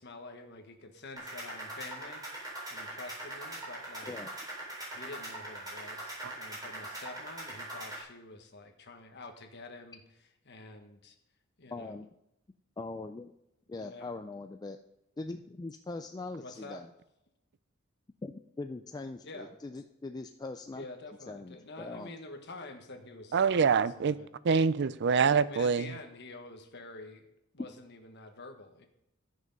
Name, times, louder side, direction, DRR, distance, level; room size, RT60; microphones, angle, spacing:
voice 1, 0.0-4.2 4.9-10.0 10.4-11.1 11.6-12.0 13.7-14.1 16.4-16.8 19.2-19.5 20.7-23.4 24.0-24.3 25.5-27.3 27.5-28.9, left 2 dB, 55° left, 1.3 m, -47 dB
sound 1, 1.2-8.0, right 1 dB, 20° right, 4.2 m, -42 dB
voice 2, 11.7-12.1 12.8-13.3 13.7-14.8 15.2-16.9 18.2-20.8 21.3-22.1, left 3 dB, 20° left, 0.3 m, -41 dB
voice 3, 23.3-24.2 24.4-25.9, right 5 dB, 60° right, 0.4 m, -25 dB
13.0 x 6.4 x 5.3 m
head